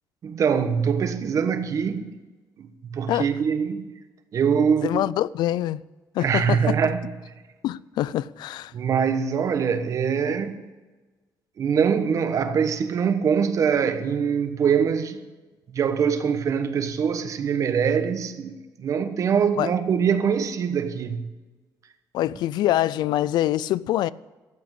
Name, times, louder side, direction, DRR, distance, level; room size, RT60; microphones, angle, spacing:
voice 1, 0.2-2.1 2.6-3.9 4.3-5.0 6.2-7.1 8.7-10.6 11.6-15.2 15.7-21.2, right 7 dB, 50° right, 1.2 m, -23 dB
voice 2, 4.8-5.8 6.1-6.8 7.6-8.7 19.6-19.7 22.1-24.1, left 13 dB, 90° left, 0.4 m, -24 dB
13.5 x 8.0 x 8.0 m
cardioid pair, 145°, 7 cm